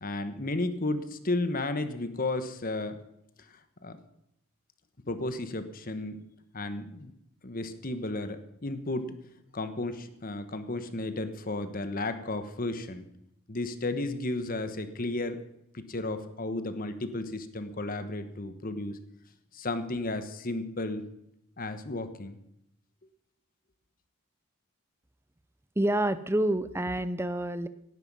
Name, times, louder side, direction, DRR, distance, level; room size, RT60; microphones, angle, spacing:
voice 1, 0.0-3.0 3.5-4.0 5.1-6.2 6.5-7.1 7.4-9.1 9.5-13.1 13.5-15.4 15.7-19.0 19.5-21.0 21.6-22.4, left 2 dB, 40° left, 10 dB, 1.2 m, -33 dB
voice 2, 25.8-27.7, right 1 dB, 10° right, 14 dB, 0.6 m, -28 dB
17.5 x 11.0 x 5.5 m, 0.78 s
head